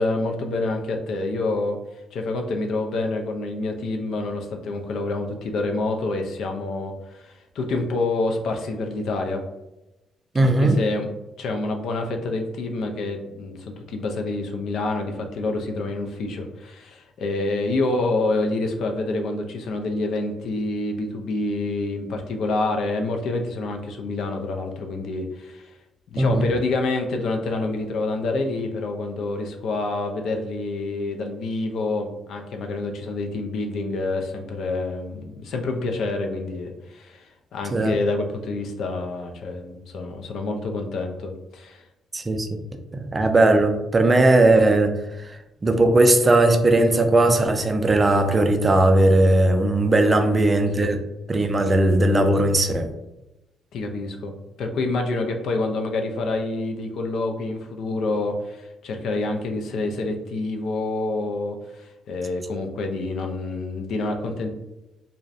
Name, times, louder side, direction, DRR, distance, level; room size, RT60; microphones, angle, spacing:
voice 1, 0.0-1.8 2.1-9.4 10.4-11.1 11.4-25.7 26.1-41.8 50.0-50.3 50.8-50.9 53.7-64.5, left 2 dB, 75° left, 4 dB, 0.3 m, -27 dB
voice 2, 10.3-10.8 26.2-26.5 37.7-38.0 42.1-42.5 42.9-45.0 45.6-51.0 51.3-52.9, right 2 dB, 30° right, 6 dB, 0.3 m, -18 dB
2.3 x 2.1 x 2.5 m, 0.96 s
cardioid pair, 90°, 0 cm